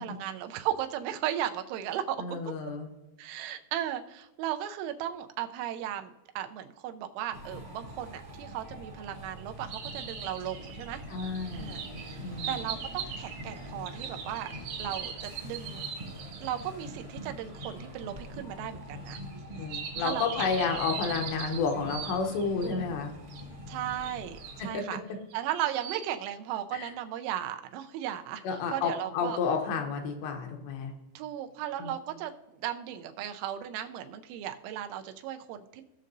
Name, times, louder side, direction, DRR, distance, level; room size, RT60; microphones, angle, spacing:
voice 1, 0.0-2.2 3.2-11.0 11.5-14.5 14.8-15.9 16.4-19.2 20.0-20.4 23.7-25.0 25.3-29.4 31.2-35.8, right 11 dB, 85° right, 7 dB, 3.0 m, -36 dB
voice 2, 2.2-2.9 11.1-11.8 12.2-12.5 19.5-23.1 24.6-24.8 26.7-26.9 28.4-30.9 31.8-31.9, left 5 dB, 75° left, 3 dB, 2.8 m, -31 dB
sound 1, 7.3-24.7, equal, 30° right, 0.9 m, -44 dB
sound 2, 9.7-16.7 17.6-17.7 19.1-22.8 23.3-23.4 24.0-24.6 25.3-26.1, right 7 dB, 65° right, 2.0 m, -40 dB
17.5 x 6.4 x 2.6 m, 1.0 s
omnidirectional pair, 5.4 m